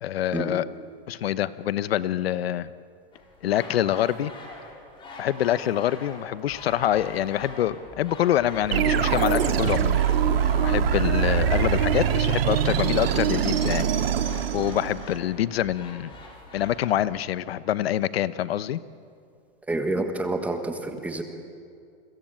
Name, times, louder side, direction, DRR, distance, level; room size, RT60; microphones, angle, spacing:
voice 1, 0.0-0.7 1.1-2.7 3.4-4.3 5.2-10.0 10.6-13.9 14.5-16.1 16.5-18.8, left 12 dB, 75° left, 15 dB, 1.0 m, -25 dB
sound 1, 3.1-17.0, left 2 dB, 15° left, 4.3 m, -44 dB
sound 2, 8.7-15.2, right 8 dB, 70° right, 2.4 m, -23 dB
voice 2, 19.7-21.2, right 2 dB, 5° right, 6 dB, 1.4 m, -28 dB
29.5 x 22.5 x 9.0 m, 2.3 s
supercardioid pair, 170°, 30 cm